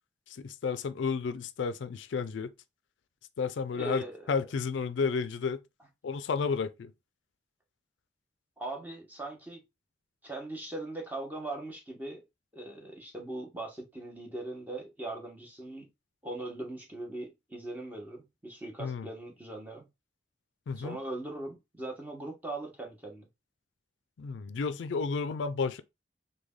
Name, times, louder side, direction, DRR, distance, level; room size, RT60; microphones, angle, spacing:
voice 1, 0.3-2.5 3.4-5.6 6.0-6.9 18.8-19.1 20.7-21.0 24.2-25.8, left 5 dB, 80° left, 0.4 m, -32 dB
voice 2, 3.7-4.4 8.6-9.6 10.2-12.2 12.5-15.9 16.2-19.9 20.8-23.3, right 2 dB, 10° right, 0.9 m, -40 dB
3.2 x 2.2 x 3.6 m
head